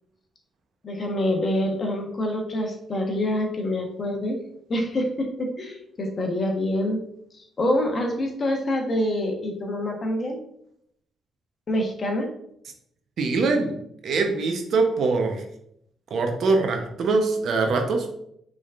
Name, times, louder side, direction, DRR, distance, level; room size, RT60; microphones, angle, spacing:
voice 1, 0.8-4.4 4.7-7.0 7.6-10.4 11.7-12.3, left 1 dB, 40° left, 2 dB, 1.1 m, -26 dB
voice 2, 13.2-13.7 14.0-15.4 16.1-18.1, right 3 dB, 65° right, 4 dB, 0.8 m, -23 dB
5.2 x 3.6 x 2.4 m, 0.73 s
cardioid pair, 90°, 0 cm